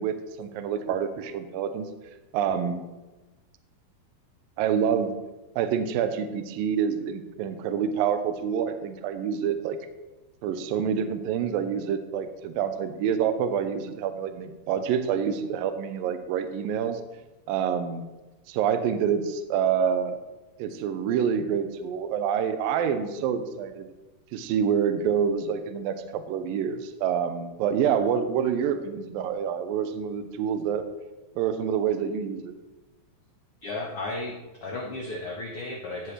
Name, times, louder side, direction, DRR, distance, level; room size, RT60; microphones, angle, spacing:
voice 1, 0.0-1.9 2.3-2.8 4.6-5.1 5.6-9.8 10.4-17.0 17.5-18.1 18.5-20.2 20.6-23.9 24.3-30.9 31.4-32.5, right 8 dB, 75° right, 9 dB, 2.3 m, -27 dB
voice 2, 33.6-34.3 34.6-36.1, left 2 dB, 85° left, -1 dB, 1.2 m, -34 dB
16.0 x 7.4 x 3.3 m, 1.1 s
omnidirectional pair, 4.5 m